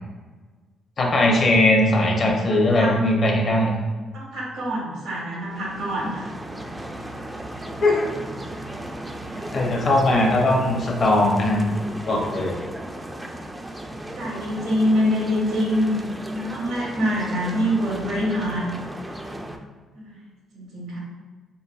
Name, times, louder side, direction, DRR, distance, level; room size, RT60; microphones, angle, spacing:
voice 1, 1.0-3.7 7.8-8.1 9.5-11.6 12.1-12.6, left 1 dB, 50° left, 0 dB, 0.7 m, -19 dB
voice 2, 2.5-2.9 4.1-6.3 9.3-9.5 14.2-16.0 16.3-18.7 19.9-20.2 20.5-21.0, equal, 90° right, -5 dB, 1.4 m, -25 dB
sound 1, 5.3-19.6, right 1 dB, 10° right, 0.3 m, -36 dB
4.0 x 2.7 x 2.4 m, 1.3 s
cardioid pair, 90°, 0 cm